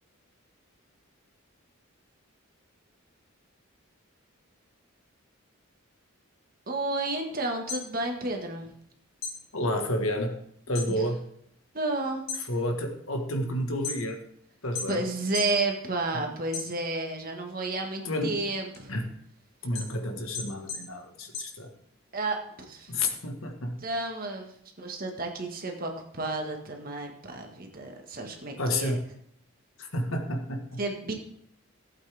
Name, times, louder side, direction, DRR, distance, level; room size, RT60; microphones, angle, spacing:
voice 1, 6.7-8.7 10.9-11.0 11.7-12.2 14.9-18.9 22.1-22.9 23.8-24.5 24.8-29.0 30.8-31.1, right 2 dB, 40° right, 2 dB, 1.7 m, -31 dB
sound 1, 7.6-8.9 9.2-11.0 11.3-11.8 12.1-14.3 14.7-15.6 16.0-17.2 17.6-22.2, left 4 dB, 45° left, 3.0 m, -38 dB
voice 2, 9.5-10.4 10.7-11.2 12.5-14.2 14.6-15.0 16.1-16.2 18.0-18.4 18.9-19.1 19.6-21.7 22.9-23.8 28.6-29.0 29.8-30.8, left 1 dB, 75° left, 5 dB, 1.6 m, -30 dB
15.5 x 8.5 x 3.5 m, 0.70 s
head